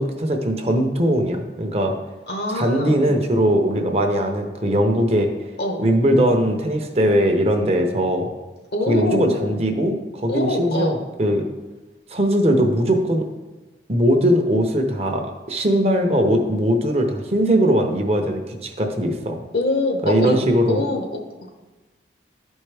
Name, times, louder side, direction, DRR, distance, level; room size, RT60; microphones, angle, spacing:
voice 1, 0.0-1.9 2.5-5.5 5.8-8.3 8.9-11.5 12.1-13.2 13.9-19.4 20.0-20.8, equal, 35° right, 4 dB, 0.7 m, -20 dB
voice 2, 2.3-3.1 5.6-5.8 8.7-9.5 10.3-11.0 19.5-20.4 20.7-21.2, left 1 dB, 65° left, 3 dB, 1.0 m, -24 dB
11.5 x 4.4 x 3.4 m, 1.2 s
head